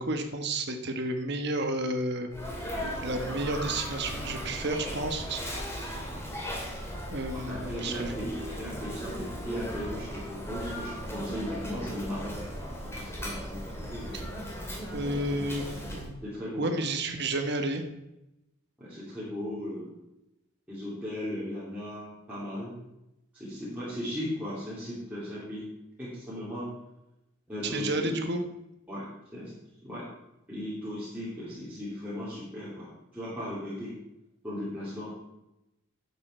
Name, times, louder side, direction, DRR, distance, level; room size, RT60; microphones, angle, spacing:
voice 1, 0.0-2.3 3.0-5.4 7.1-8.1 14.1-14.2 14.9-16.2 16.6-17.8 27.6-28.4, right 2 dB, 50° right, 6 dB, 1.2 m, -31 dB
Sneeze, 2.3-16.1, equal, 10° left, 2.3 m, -37 dB
voice 2, 7.3-12.3 13.0-14.2 16.2-16.6 18.8-19.9 20.7-22.8 23.3-25.7 26.0-26.7 27.5-28.1 28.9-29.5 29.8-30.1 30.5-33.9 34.4-35.1, equal, 5° right, -11 dB, 3.0 m, -37 dB
11.5 x 7.6 x 4.4 m, 0.91 s
head